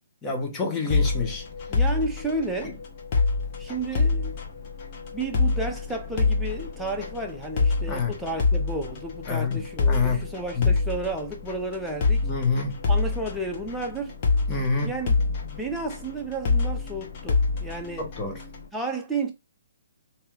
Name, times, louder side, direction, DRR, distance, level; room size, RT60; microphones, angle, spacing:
voice 1, 0.2-1.4 7.9-8.1 9.3-10.2 10.5-10.7 12.2-12.8 14.5-14.9 18.0-18.4, left 4 dB, 20° left, 1.1 m, -27 dB
sound 1, 0.9-18.6, left 4 dB, 40° left, 1.2 m, -26 dB
voice 2, 1.7-2.8 3.6-4.4 5.1-12.3 12.9-14.2 14.8-18.1 18.7-19.3, right 2 dB, ahead, 0.8 m, -32 dB
3.3 x 2.9 x 3.1 m
figure-of-eight pair, 135°, 0 cm